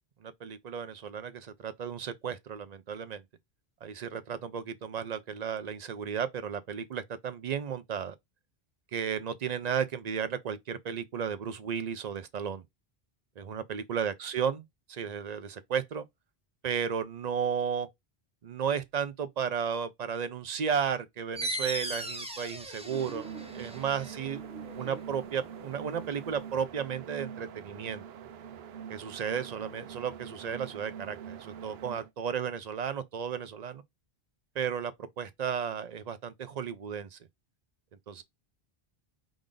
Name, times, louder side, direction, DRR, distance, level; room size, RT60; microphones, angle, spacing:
voice 1, 0.2-3.2 3.8-8.1 8.9-12.6 13.4-16.0 16.6-17.9 18.4-24.4 24.8-28.0 28.9-33.8 34.6-34.9 35.2-37.2 38.1-38.2, right 7 dB, 50° right, 0.6 m, -34 dB
sound 1, 21.4-26.6, right 1 dB, 5° right, 0.6 m, -39 dB
sound 2, 22.8-32.1, right 8 dB, 85° right, 0.8 m, -44 dB
5.1 x 2.4 x 3.7 m
omnidirectional pair, 1.0 m